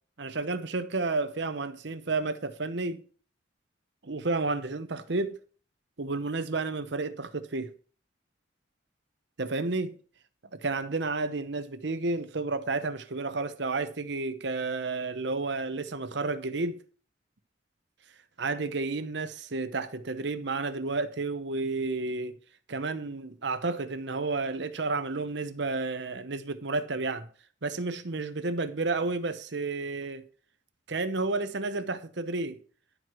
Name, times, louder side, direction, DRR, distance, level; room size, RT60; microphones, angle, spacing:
voice 1, 0.2-3.0 4.0-5.4 6.0-7.7 9.4-10.0 10.5-16.8 18.4-22.4 22.7-27.3 27.6-30.2 30.9-32.6, right 3 dB, 65° right, 0.9 m, -31 dB
11.5 x 4.7 x 6.2 m
head